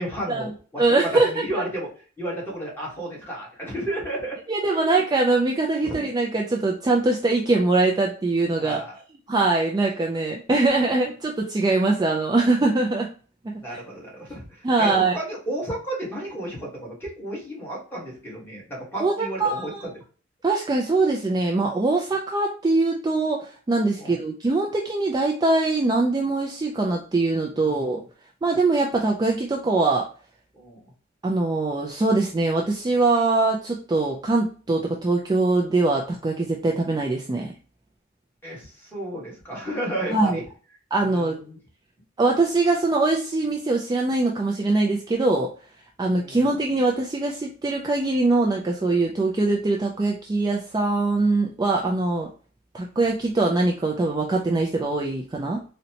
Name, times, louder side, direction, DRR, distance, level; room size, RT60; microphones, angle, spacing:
voice 1, 0.0-1.9 2.2-4.4 4.7-4.9 5.8-6.1 8.6-9.0 13.6-19.9 24.0-24.2 27.6-28.0 30.5-30.8 38.4-40.4 41.0-41.6 46.1-46.5, right 1 dB, 10° left, -4 dB, 1.3 m, -33 dB
voice 2, 0.8-1.4 4.5-8.8 9.3-13.1 14.6-15.1 19.0-19.8 20.4-28.0 28.4-30.1 31.2-37.5 40.1-40.4 40.9-41.4 42.2-45.5 46.0-52.3 52.7-55.6, right 3 dB, 20° right, -1 dB, 0.3 m, -22 dB
3.9 x 2.1 x 2.8 m, 0.40 s
head